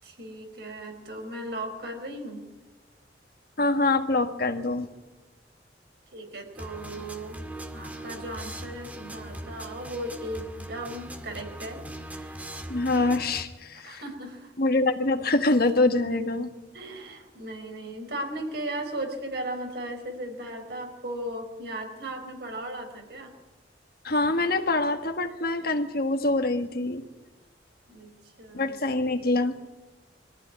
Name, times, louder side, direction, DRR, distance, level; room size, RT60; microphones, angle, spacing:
voice 1, 0.0-2.4 6.1-7.4 7.7-11.8 12.1-12.4 13.7-14.5 16.7-23.3 27.9-28.8, right 1 dB, 60° right, 4 dB, 4.7 m, -37 dB
voice 2, 3.6-4.9 12.7-14.0 14.6-16.5 24.0-27.0 28.5-29.6, left 2 dB, 55° left, 7 dB, 1.7 m, -25 dB
sound 1, 6.5-13.4, right 1 dB, 10° right, 1.9 m, -40 dB
23.0 x 15.0 x 9.8 m, 1.1 s
head